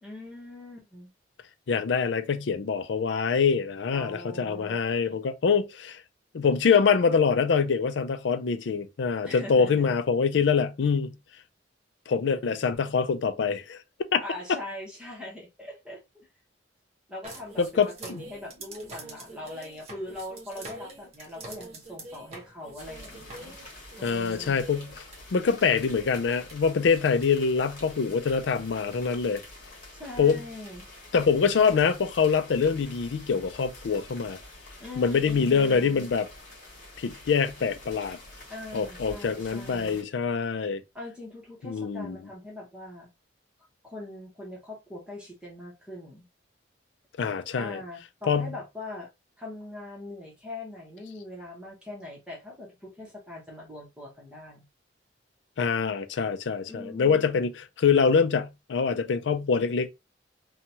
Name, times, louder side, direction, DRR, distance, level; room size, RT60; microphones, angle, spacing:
voice 1, 0.0-1.1 3.9-4.8 5.0-5.2 9.2-9.9 14.2-16.3 17.1-23.6 24.0-24.5 29.9-30.9 34.8-36.1 38.5-40.0 40.9-43.1 43.8-46.2 47.5-49.1 49.4-54.7 56.7-57.4, left 1 dB, 5° right, 0.9 m, -42 dB
voice 2, 1.7-6.0 6.3-11.2 12.1-13.8 14.1-14.2 17.6-18.2 24.0-25.0 25.3-29.4 30.2-30.4 31.1-34.4 35.0-36.3 37.0-38.2 38.7-40.8 41.6-42.2 47.2-47.8 48.3-48.5 55.6-59.9, left 5 dB, 70° left, 0.4 m, -25 dB
sound 1, 17.2-25.2 25.8-25.9 26.1-26.5 27.2-27.3, right 2 dB, 35° right, 0.9 m, -45 dB
sound 2, 22.8-40.0, left 1 dB, 50° left, 1.5 m, -47 dB
2.8 x 2.3 x 2.8 m
head